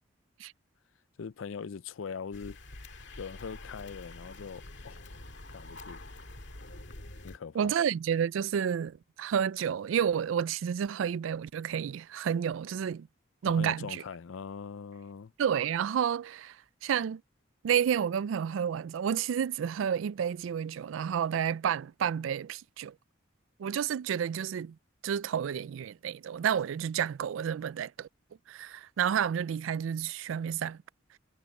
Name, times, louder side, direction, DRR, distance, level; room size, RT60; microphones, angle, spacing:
voice 1, 1.2-2.6 3.2-5.0 5.5-6.0 7.2-7.7 13.4-15.3, left 6 dB, 85° left, 0.5 m, -41 dB
sound 1, 2.3-7.4, left 2 dB, 65° left, 1.9 m, -46 dB
voice 2, 7.5-13.1 13.4-14.0 15.4-17.2 17.6-22.9 23.6-24.8 25.0-28.1 28.5-30.8, right 8 dB, 80° right, 0.3 m, -30 dB
head